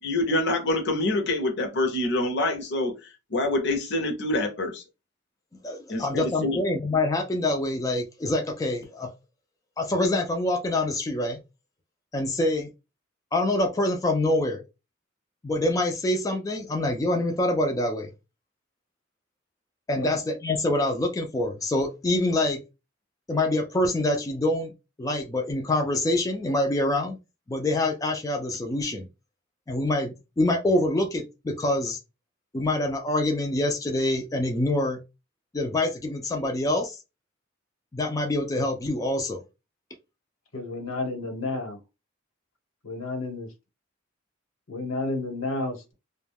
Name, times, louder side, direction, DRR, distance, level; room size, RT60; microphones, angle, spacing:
voice 1, 0.0-4.8 5.9-6.6, left 2 dB, 55° left, 0.6 m, -26 dB
voice 2, 5.6-9.1 9.8-11.4 12.1-12.7 13.3-14.6 15.4-18.1 19.9-22.6 23.3-24.7 25.0-27.2 27.5-29.1 29.7-32.0 32.5-35.0 35.5-37.0 37.9-39.4, left 1 dB, 15° left, 0.3 m, -25 dB
voice 3, 40.5-41.8 42.8-43.5 44.7-45.9, left 2 dB, 85° left, 1.1 m, -31 dB
2.2 x 2.2 x 3.3 m
head